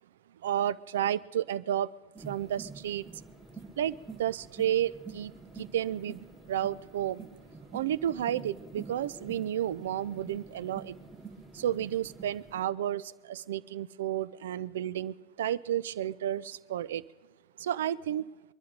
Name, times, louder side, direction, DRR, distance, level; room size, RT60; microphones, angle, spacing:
voice 1, 0.4-1.9 2.2-3.1 3.8-7.3 7.7-11.0 11.5-17.0 17.6-18.3, right 11 dB, 65° right, 20 dB, 0.5 m, -32 dB
sound 1, 2.1-12.6, right 4 dB, 5° right, 2.1 m, -47 dB
22.0 x 12.0 x 5.2 m, 1.1 s
figure-of-eight pair, 85°, 0 cm